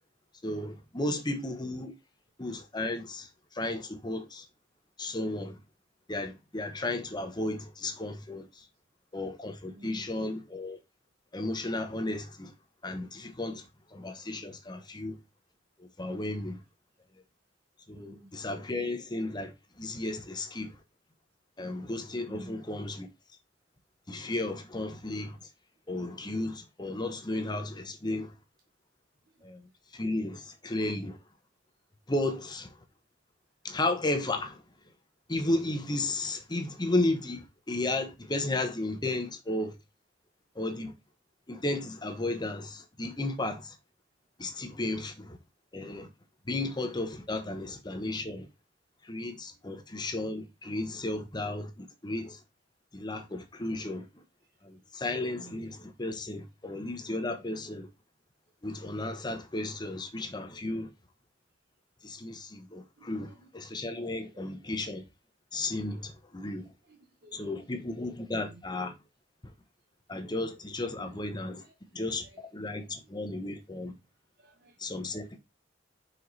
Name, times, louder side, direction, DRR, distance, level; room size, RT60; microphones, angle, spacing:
voice 1, 0.4-1.9 2.4-4.5 5.0-5.6 6.1-8.7 9.1-10.8 11.3-12.5 12.8-15.2 15.8-16.6 17.9-20.8 21.6-23.1 24.1-25.5 25.9-28.3 29.4-31.2 32.1-32.7 33.6-34.6 35.3-39.8 40.5-40.9 41.5-43.8 44.4-45.4 45.7-46.1 46.5-48.5 49.0-52.4 52.9-54.2 54.6-57.9 58.6-60.9 62.0-65.0 65.5-66.7 67.3-68.9 70.1-71.6 71.9-73.9 74.8-75.4, left 2 dB, 25° left, 0.9 m, -34 dB
voice 2, 9.7-10.1 18.0-18.4 22.3-22.6 29.4-29.5 47.4-47.6 54.4-54.5 55.4-55.6 63.0-63.5 64.1-64.4 65.8-66.0 66.9-67.9 68.3-68.6 70.9-71.2 71.5-72.4 72.8-73.5 74.4-74.8, right 2 dB, 60° right, 1.2 m, -53 dB
5.5 x 4.9 x 4.1 m
head